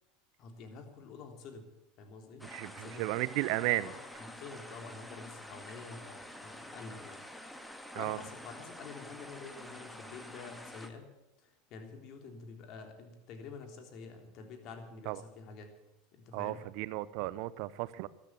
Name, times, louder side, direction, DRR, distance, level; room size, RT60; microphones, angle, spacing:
voice 1, 0.4-1.7 2.0-2.4 2.8-3.1 3.8-7.2 7.7-11.1 11.4-15.7 16.1-16.6, left 4 dB, 55° left, 5 dB, 3.5 m, -48 dB
sound 1, 2.4-10.9, left 1 dB, 5° left, 1.9 m, -48 dB
voice 2, 2.5-3.9 7.9-8.2 15.1-15.2 16.3-18.1, right 18 dB, 60° right, 18 dB, 0.7 m, -34 dB
13.5 x 12.5 x 8.4 m, 0.92 s
hypercardioid pair, 90°, 0 cm